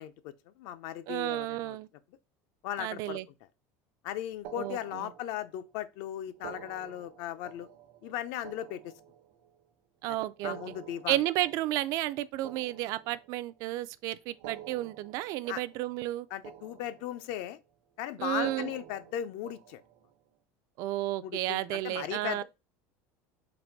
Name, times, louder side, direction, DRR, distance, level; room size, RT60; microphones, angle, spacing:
voice 1, 0.0-1.8 2.6-3.2 4.0-7.7 8.0-8.9 10.1-10.2 10.4-11.2 15.5-15.6 16.3-17.6 18.0-19.8 21.2-22.4, left 11 dB, 65° left, 0.5 m, -37 dB
voice 2, 1.1-1.9 2.8-3.3 4.6-5.1 10.0-10.6 11.1-16.3 18.2-18.7 20.8-22.4, right 15 dB, 50° right, 0.3 m, -32 dB
sound 1, 4.4-5.7 6.3-9.6 10.3-13.6 14.3-16.2 16.4-17.5 18.3-20.1, right 10 dB, 85° right, 0.8 m, -49 dB
4.1 x 2.6 x 4.4 m
cardioid pair, 160°, 7 cm